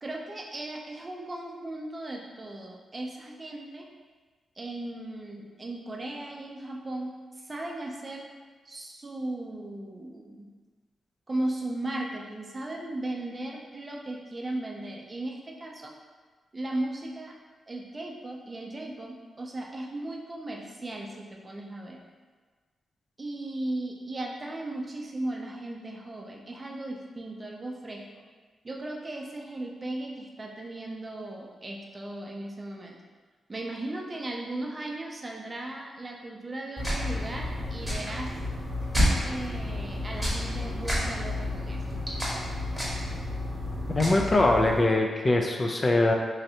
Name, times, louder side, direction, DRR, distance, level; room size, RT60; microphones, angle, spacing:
voice 1, 0.0-3.9 4.6-8.3 8.7-10.5 11.3-15.9 16.5-17.3 17.7-22.0 23.2-28.0 28.6-33.0 33.5-38.3 39.2-41.8, right 1 dB, 30° right, 0 dB, 0.5 m, -36 dB
sound 1, 36.8-44.8, left 1 dB, 5° left, 0.9 m, -30 dB
voice 2, 44.0-46.1, left 2 dB, 35° left, 2 dB, 0.3 m, -22 dB
3.1 x 2.5 x 2.8 m, 1.4 s
cardioid pair, 85°, 0 cm